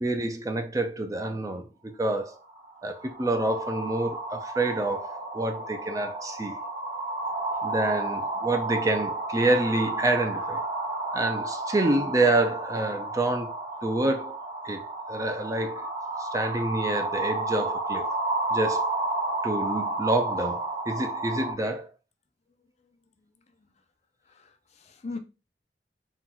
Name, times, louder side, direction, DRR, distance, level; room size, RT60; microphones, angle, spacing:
voice 1, 0.0-2.4 2.8-6.6 7.6-10.6 11.1-14.4 14.6-14.8 15.1-15.8 16.2-18.1 18.5-18.9 19.4-21.9, right 2 dB, 20° right, 0.5 m, -27 dB
sound 1, 2.3-21.5, right 2 dB, 50° right, 1.5 m, -32 dB
voice 2, 24.3-25.2, left 3 dB, 40° left, 0.5 m, -39 dB
4.4 x 2.3 x 3.8 m
head